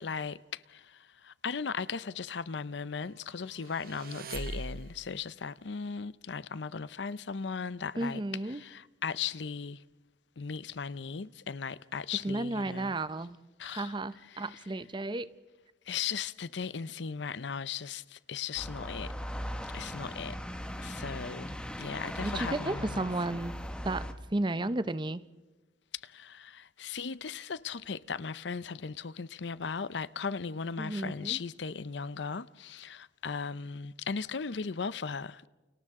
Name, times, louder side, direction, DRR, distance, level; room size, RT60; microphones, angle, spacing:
voice 1, 0.0-9.8 10.4-13.0 13.6-14.0 14.3-14.6 15.9-19.1 19.7-20.4 20.8-23.0 26.0-35.5, left 6 dB, 75° left, 0.7 m, -37 dB
sound 1, 3.5-5.2, right 3 dB, 55° right, 1.1 m, -41 dB
voice 2, 8.0-8.6 12.2-13.4 13.7-15.3 22.2-23.5 23.8-24.0 24.3-25.2 30.8-31.4, right 2 dB, 25° right, 0.7 m, -33 dB
sound 2, 18.6-24.1, equal, 5° left, 1.6 m, -39 dB
30.0 x 29.0 x 3.7 m
head